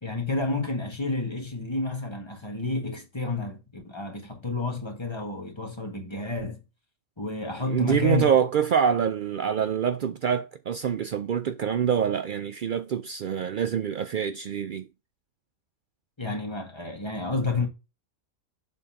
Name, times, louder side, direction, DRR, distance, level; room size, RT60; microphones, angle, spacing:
voice 1, 0.0-6.6 7.2-8.3 16.2-17.7, left 2 dB, 20° left, 1.7 m, -30 dB
voice 2, 7.7-14.9, right 8 dB, 80° right, 0.4 m, -25 dB
7.5 x 3.8 x 5.7 m
omnidirectional pair, 1.4 m